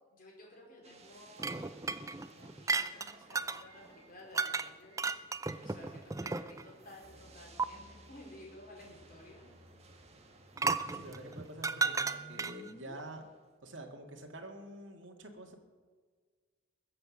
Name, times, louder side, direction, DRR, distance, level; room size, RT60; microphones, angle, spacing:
voice 1, 0.1-1.9 2.2-5.2 5.6-9.5, left 1 dB, 45° left, -2 dB, 4.6 m, -54 dB
sound 1, 0.8-13.5, right 3 dB, 35° right, 1.6 m, -60 dB
sound 2, 1.4-3.6 4.3-4.7 5.0-6.7 7.6-7.7 10.6-12.7, right 4 dB, 15° right, 0.4 m, -34 dB
sound 3, 7.0-13.0, left 1 dB, 25° left, 0.8 m, -57 dB
voice 2, 10.9-13.2 13.6-15.5, right 1 dB, 70° right, 2 dB, 2.0 m, -47 dB
21.0 x 7.8 x 6.4 m, 1.5 s
head